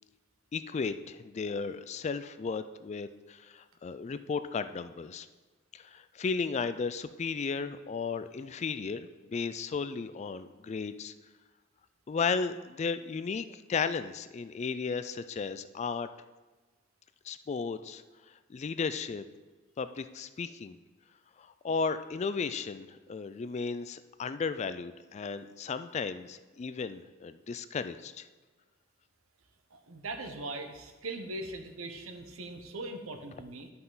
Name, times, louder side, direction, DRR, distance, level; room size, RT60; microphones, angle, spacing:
voice 1, 0.5-5.3 5.7-11.1 12.1-16.1 17.2-18.0 18.5-19.2 19.8-20.8 21.4-28.3, left 5 dB, 35° left, 12 dB, 0.3 m, -34 dB
voice 2, 29.7-33.7, right 2 dB, 85° right, 6 dB, 1.0 m, -40 dB
11.0 x 5.6 x 4.0 m, 1.3 s
head